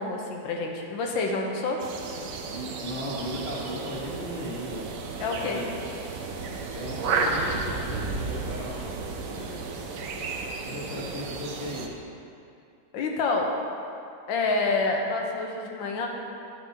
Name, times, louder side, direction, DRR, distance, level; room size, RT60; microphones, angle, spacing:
voice 1, 0.0-1.8 5.2-5.6 9.3-9.7 10.9-11.1 12.9-13.6 14.3-16.1, left 3 dB, 85° left, 1 dB, 1.6 m, -28 dB
sound 1, 1.8-11.9, right 4 dB, 65° right, 0.8 m, -33 dB
voice 2, 2.5-4.9 5.2-5.7 6.7-9.0 10.6-11.9, left 1 dB, 35° left, -9 dB, 1.3 m, -36 dB
11.5 x 7.1 x 2.8 m, 2.6 s
omnidirectional pair, 2.0 m